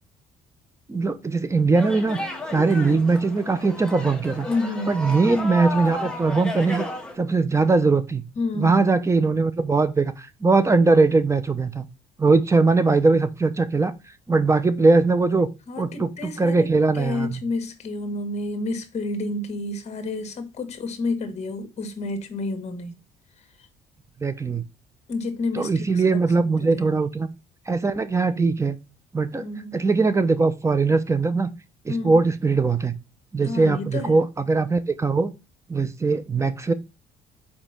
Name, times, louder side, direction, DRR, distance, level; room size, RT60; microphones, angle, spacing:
voice 1, 0.9-2.2 2.5-4.5 4.9-6.8 7.2-8.2 8.5-11.8 12.2-13.9 14.3-15.5 15.8-17.4 24.2-24.6 25.5-27.3 27.7-28.8 29.1-29.4 29.7-31.5 31.8-32.9 33.3-35.3 35.7-36.7, right 3 dB, 15° right, 0.8 m, -21 dB
sound 1, 1.7-7.1, left 1 dB, 5° left, 1.5 m, -33 dB
voice 2, 4.5-5.0 8.4-8.9 15.7-16.7 16.9-23.0 23.4-23.5 25.1-26.2 26.6-26.9 29.4-29.7 31.9-32.2 33.4-34.2, left 2 dB, 40° left, 1.6 m, -30 dB
5.2 x 4.3 x 5.7 m
cardioid pair, 110°, 17 cm